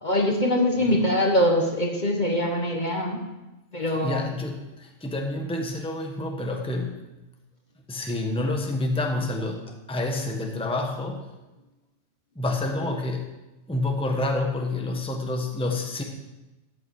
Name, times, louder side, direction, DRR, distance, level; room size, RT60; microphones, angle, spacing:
voice 1, 0.0-3.2 3.7-4.3, left 1 dB, 35° left, 2 dB, 1.4 m, -23 dB
voice 2, 4.0-6.9 7.9-9.6 9.9-11.3 12.4-13.2 13.7-16.0, left 2 dB, 5° left, 2 dB, 1.2 m, -28 dB
13.5 x 8.8 x 4.8 m, 1.0 s
omnidirectional pair, 1.3 m